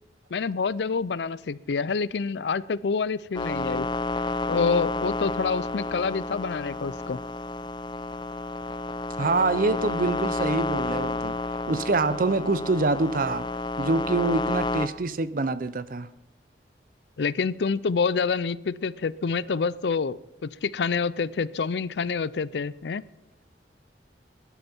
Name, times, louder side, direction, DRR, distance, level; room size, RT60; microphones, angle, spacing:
voice 1, 0.3-3.9 4.5-7.2 17.2-23.0, left 5 dB, 70° left, 18 dB, 0.5 m, -27 dB
sound 1, 3.3-14.9, left 3 dB, 25° left, 0.7 m, -30 dB
voice 2, 9.2-11.4 11.7-13.5 13.8-16.1, right 3 dB, 50° right, 14 dB, 0.6 m, -25 dB
21.0 x 11.0 x 4.5 m, 0.91 s
head